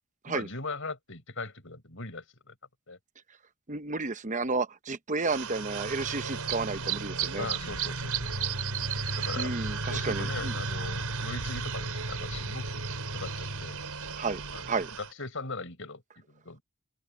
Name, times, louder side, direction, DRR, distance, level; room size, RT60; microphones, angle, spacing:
voice 1, 0.3-2.5 2.9-3.0 7.4-8.6 9.1-12.8 13.1-13.8 14.5-16.6, left 3 dB, 60° left, 6.4 m, -40 dB
voice 2, 3.7-7.5 9.4-10.6 14.2-14.4 14.7-14.9, right 3 dB, 35° right, 0.9 m, -32 dB
sound 1, 5.2-15.1, right 4 dB, 85° right, 4.4 m, -33 dB
open air
head